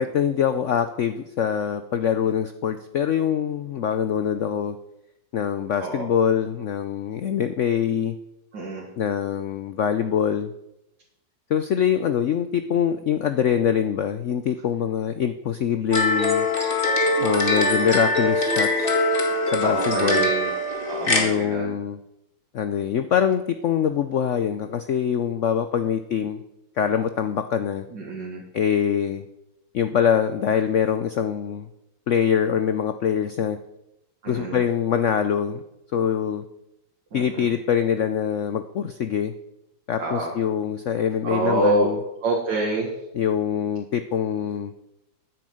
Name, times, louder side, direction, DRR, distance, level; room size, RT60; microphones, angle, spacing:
voice 1, 0.0-4.8 5.3-8.2 9.0-10.5 11.5-16.5 17.2-18.9 19.5-20.3 21.1-22.0 22.5-26.4 26.8-27.9 28.5-29.3 29.7-31.7 32.1-33.6 34.3-35.6 35.9-36.4 37.1-39.3 39.9-42.0 43.1-44.7, left 8 dB, 75° left, 10 dB, 0.7 m, -24 dB
voice 2, 8.5-8.8 19.6-20.5 20.9-21.8 27.9-28.4 34.2-34.6 37.1-37.5 40.0-40.3 41.2-41.9 42.2-42.9, right 2 dB, 70° right, -3 dB, 2.4 m, -26 dB
sound 1, 15.9-21.2, left 1 dB, 30° left, 2.0 m, -22 dB
9.7 x 9.4 x 7.7 m, 0.89 s
omnidirectional pair, 2.0 m